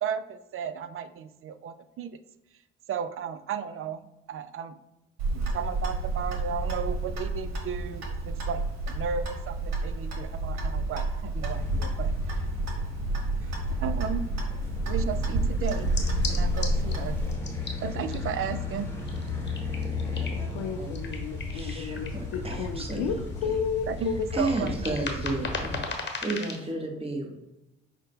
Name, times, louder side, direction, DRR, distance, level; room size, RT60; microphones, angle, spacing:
voice 1, 0.0-2.2 2.9-4.0 4.3-4.8 5.3-12.1 13.4-14.3 14.9-15.9 16.3-17.2 17.8-18.9 23.9-24.9, right 7 dB, 50° right, 11 dB, 0.4 m, -34 dB
Clock, 5.2-17.3, right 2 dB, 65° right, 1.0 m, -30 dB
sound 1, 11.4-25.8, left 4 dB, 10° left, 1.2 m, -35 dB
sound 2, 15.6-26.7, left 4 dB, 40° left, 0.9 m, -40 dB
voice 2, 20.3-24.3, left 7 dB, 75° left, 5 dB, 0.4 m, -32 dB
voice 3, 21.5-23.5 24.3-25.8 26.2-27.4, right 2 dB, 20° right, 2 dB, 1.1 m, -32 dB
5.4 x 2.1 x 3.6 m, 0.92 s
hypercardioid pair, 45°, 29 cm